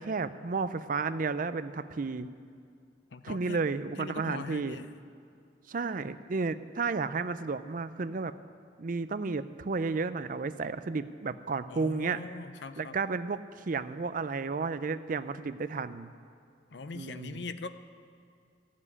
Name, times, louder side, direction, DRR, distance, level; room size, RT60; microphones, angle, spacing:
voice 1, 0.0-2.3 3.2-4.8 5.7-8.3 8.8-12.2 12.8-16.1 16.9-17.4, right 4 dB, 50° right, 13 dB, 0.5 m, -32 dB
voice 2, 3.1-3.6 4.0-4.9 11.7-13.0 16.7-17.7, left 3 dB, 70° left, 11 dB, 0.6 m, -41 dB
14.5 x 7.5 x 9.7 m, 2.3 s
head